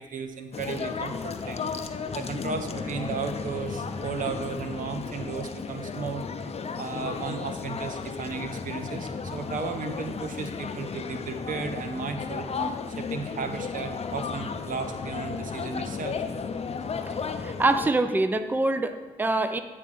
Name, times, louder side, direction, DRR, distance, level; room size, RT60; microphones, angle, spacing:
voice 1, 0.0-6.2 6.8-12.5 12.9-16.2, right 5 dB, 65° right, 7 dB, 0.7 m, -35 dB
sound 1, 0.5-17.9, left 5 dB, 45° left, 0.6 m, -34 dB
Gong, 2.4-8.3 8.5-8.6, equal, 40° right, 2.3 m, -50 dB
voice 2, 17.4-19.6, right 2 dB, 15° right, 9 dB, 0.5 m, -25 dB
8.4 x 3.3 x 5.3 m, 1.3 s
supercardioid pair, 45°, 15 cm